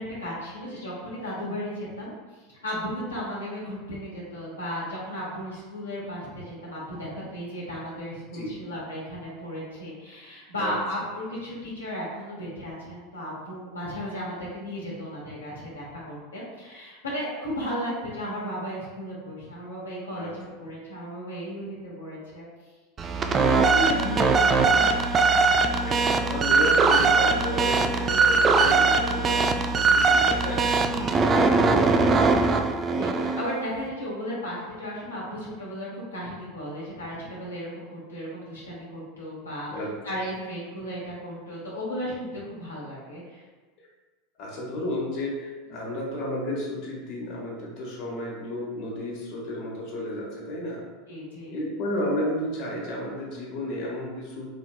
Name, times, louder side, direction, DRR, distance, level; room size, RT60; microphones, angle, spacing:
voice 1, 0.0-22.5 23.3-26.0 30.9-31.7 32.4-32.5 32.9-39.7 40.0-43.4 45.7-46.0 51.1-51.6, equal, 85° left, -6 dB, 1.0 m, -35 dB
sound 1, 23.0-33.6, right 4 dB, 30° right, 0.3 m, -21 dB
voice 2, 25.8-32.2 32.9-33.1 39.7-39.9 43.8-43.9 44.4-50.8 51.5-54.5, left 1 dB, 50° left, -4 dB, 1.1 m, -32 dB
4.3 x 2.9 x 2.2 m, 1.3 s
hypercardioid pair, 85°, 0 cm